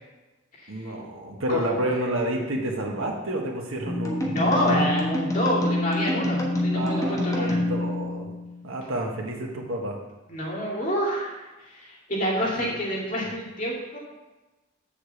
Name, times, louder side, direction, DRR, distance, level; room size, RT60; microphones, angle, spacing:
voice 1, 0.7-4.8 6.7-8.3 8.6-10.0 12.5-12.8, right 1 dB, 85° right, 0 dB, 1.5 m, -30 dB
sound 1, 3.9-8.7, left 1 dB, 15° left, 1.1 m, -26 dB
voice 2, 4.2-7.6 10.3-14.0, equal, 40° left, -4 dB, 2.3 m, -28 dB
7.2 x 5.0 x 7.1 m, 1.1 s
head